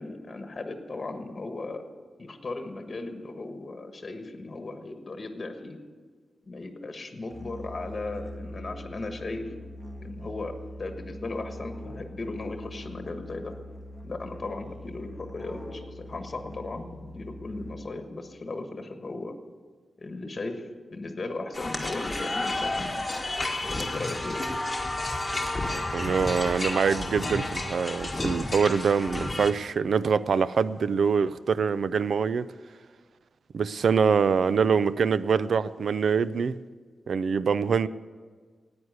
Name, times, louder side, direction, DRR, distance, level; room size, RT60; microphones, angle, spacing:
voice 1, 0.0-1.8 2.2-5.8 6.5-9.5 10.0-13.5 14.0-19.3 20.0-22.8 23.6-24.4, left 2 dB, 30° left, 5 dB, 1.4 m, -37 dB
Musical instrument, 7.3-18.1, left 1 dB, 5° right, 1.5 m, -42 dB
sound 1, 21.5-29.5, left 2 dB, 15° left, 1.5 m, -31 dB
voice 2, 25.9-32.5 33.5-36.5 37.1-37.9, right 6 dB, 65° right, 16 dB, 0.4 m, -24 dB
14.5 x 9.6 x 8.1 m, 1.5 s
wide cardioid pair, 165°, 0 cm